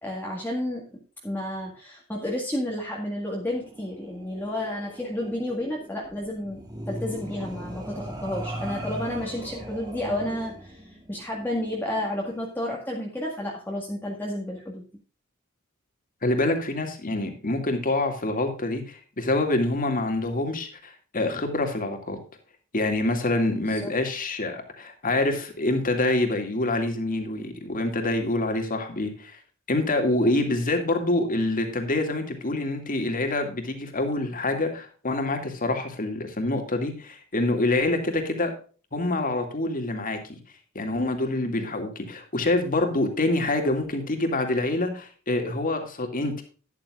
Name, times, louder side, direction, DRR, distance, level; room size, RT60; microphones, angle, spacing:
voice 1, 0.0-14.8 23.7-23.9, left 1 dB, 10° left, -2 dB, 1.9 m, -31 dB
sound 1, 3.5-12.5, right 1 dB, 20° right, 2.5 m, -39 dB
voice 2, 16.2-22.2 22.7-29.4 29.7-38.5 38.9-40.4 40.7-46.4, left 2 dB, 40° left, 5 dB, 2.3 m, -26 dB
12.5 x 11.0 x 2.5 m, 0.38 s
head